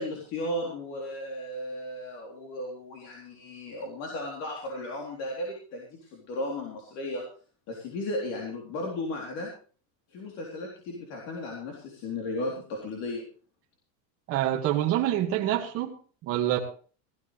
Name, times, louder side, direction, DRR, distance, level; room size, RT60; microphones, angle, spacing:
voice 1, 0.0-7.2 7.7-9.5 10.1-13.2, left 1 dB, 40° left, 0 dB, 3.8 m, -35 dB
voice 2, 14.3-15.9 16.2-16.6, right 12 dB, 35° right, -1 dB, 2.2 m, -26 dB
17.0 x 14.5 x 3.4 m, 0.39 s
cardioid pair, 180°, 40 cm